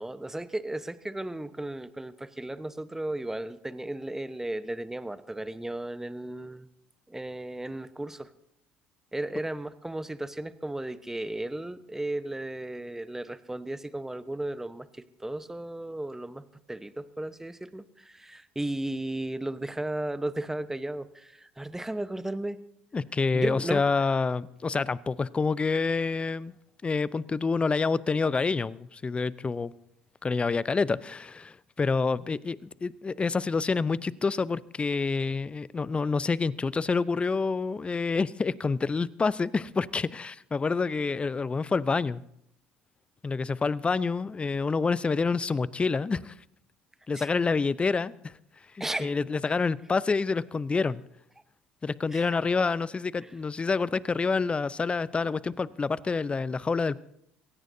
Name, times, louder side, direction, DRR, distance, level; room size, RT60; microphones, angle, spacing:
voice 1, 0.0-6.7 7.1-8.3 9.1-22.6 23.3-24.0 47.2-47.3 48.8-49.1 52.1-52.3, right 1 dB, 10° right, 12 dB, 1.0 m, -35 dB
voice 2, 22.9-26.5 26.8-29.7 30.2-42.2 43.2-46.3 47.1-48.3 48.7-51.0 51.8-57.0, left 4 dB, 25° left, 19 dB, 0.6 m, -27 dB
24.5 x 17.0 x 2.7 m, 0.74 s
hypercardioid pair, 70°, 5 cm